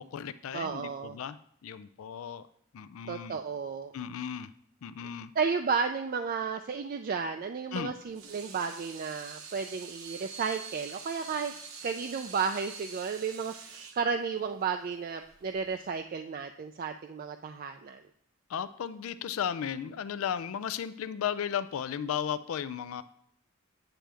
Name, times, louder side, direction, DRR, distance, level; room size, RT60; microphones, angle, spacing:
voice 1, 0.0-1.4 1.6-2.4 2.7-3.4 3.9-4.5 4.8-5.3 7.7-7.9 18.5-23.0, left 8 dB, 75° left, 13 dB, 0.4 m, -35 dB
voice 2, 0.5-1.2 3.1-3.9 5.4-11.5 11.8-18.0, right 5 dB, 45° right, 6 dB, 0.3 m, -33 dB
Water tap faucet / Sink (filling or washing), 8.0-16.0, right 5 dB, 70° right, 0.9 m, -46 dB
8.9 x 7.4 x 3.4 m, 0.65 s
head